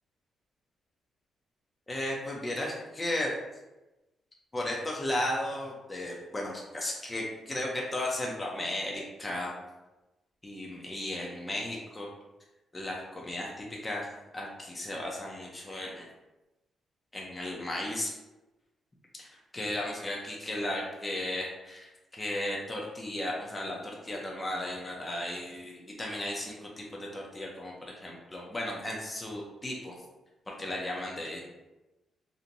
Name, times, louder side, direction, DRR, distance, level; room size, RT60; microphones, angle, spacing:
voice 1, 1.9-3.3 4.5-9.5 10.4-12.1 12.7-14.1 14.3-16.0 17.1-18.1 19.2-30.0 30.5-31.5, left 1 dB, 15° left, -3 dB, 0.5 m, -35 dB
2.9 x 2.6 x 2.5 m, 1.0 s
cardioid pair, 120°, 0 cm